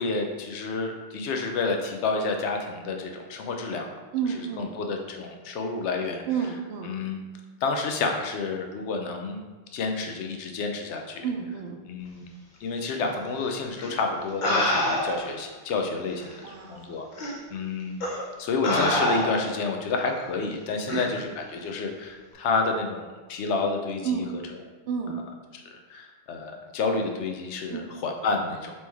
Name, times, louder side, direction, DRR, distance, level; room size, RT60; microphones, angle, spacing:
voice 1, 0.0-3.9 4.6-6.2 6.8-7.2 7.6-9.4 9.7-11.2 11.9-12.2 12.6-18.0 18.4-24.2 25.9-28.7, left 3 dB, 90° left, 3 dB, 0.9 m, -29 dB
voice 2, 4.1-4.8 6.3-6.9 11.2-11.8 16.4-17.0 20.9-21.0 24.0-24.4 24.9-25.3 27.7-28.0, right 7 dB, 75° right, 2 dB, 0.8 m, -31 dB
sound 1, 13.8-13.9 14.4-15.4 16.2-16.3 17.2-17.4 18.0-18.2 18.6-19.6 20.9-21.1, left 1 dB, 50° left, 0.8 m, -26 dB
4.1 x 3.1 x 3.4 m, 1.3 s
omnidirectional pair, 1.1 m